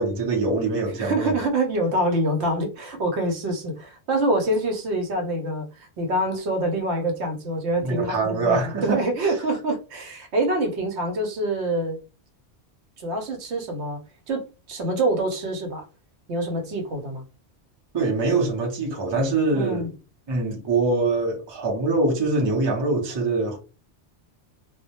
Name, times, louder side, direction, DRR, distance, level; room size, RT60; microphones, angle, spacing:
voice 1, 0.0-1.4 7.8-9.0 17.9-19.9 20.3-23.6, right 3 dB, 30° right, 0.6 m, -24 dB
voice 2, 1.0-12.0 13.0-14.0 14.3-15.8 16.3-17.2 19.5-19.9, right 1 dB, 75° right, 0.9 m, -26 dB
2.1 x 2.1 x 2.8 m
omnidirectional pair, 1.2 m